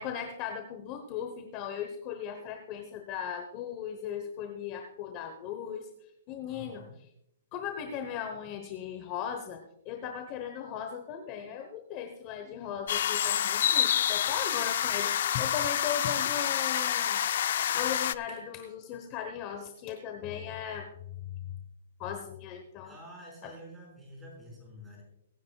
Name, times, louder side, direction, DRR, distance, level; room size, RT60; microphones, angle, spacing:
voice 1, 0.0-5.9 6.3-6.8 7.5-17.2 17.7-20.9 22.0-22.9 23.4-23.5, left 8 dB, 25° left, 6 dB, 1.0 m, -37 dB
voice 2, 6.5-6.9 22.8-25.0, equal, 5° right, -3 dB, 5.6 m, -48 dB
sound 1, 12.9-18.1, left 10 dB, 55° left, 0.5 m, -28 dB
23.0 x 10.5 x 2.4 m, 0.77 s
hypercardioid pair, 165°, 0 cm